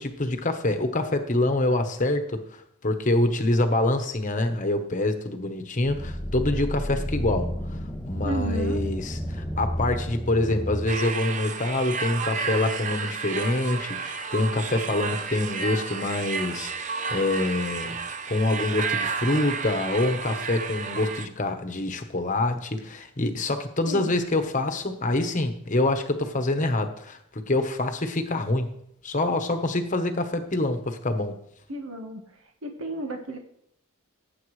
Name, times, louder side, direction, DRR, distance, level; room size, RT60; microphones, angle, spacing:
voice 1, 0.0-7.5 8.0-18.0 18.3-28.7 29.0-31.4, left 2 dB, 35° left, 6 dB, 1.1 m, -26 dB
sound 1, 5.8-10.9, equal, 10° left, 0.6 m, -31 dB
voice 2, 8.2-8.8 23.9-24.2 31.7-32.2 32.6-33.4, right 1 dB, 70° right, 3 dB, 1.4 m, -32 dB
sound 2, 10.9-21.3, right 5 dB, 35° right, 0.7 m, -32 dB
18.0 x 8.2 x 3.3 m, 0.75 s
head